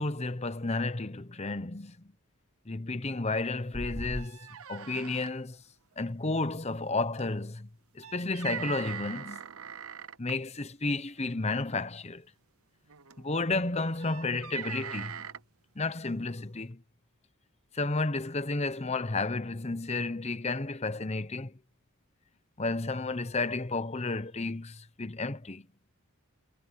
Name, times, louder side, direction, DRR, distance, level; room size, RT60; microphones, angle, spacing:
voice 1, 0.0-2.1 2.7-4.4 4.7-5.6 6.0-7.7 7.9-9.4 10.2-12.2 13.2-15.3 15.8-16.8 17.7-21.5 22.6-25.7, left 3 dB, 30° left, 1.0 m, -32 dB
sound 1, 3.3-3.4 3.7-3.8 4.2-5.3 7.2-7.3 8.0-10.3 11.5-11.7 12.9-13.2 14.0-15.4, right 9 dB, 75° right, 0.9 m, -42 dB
sound 2, 3.7-4.3, equal, 15° right, 3.9 m, -37 dB
head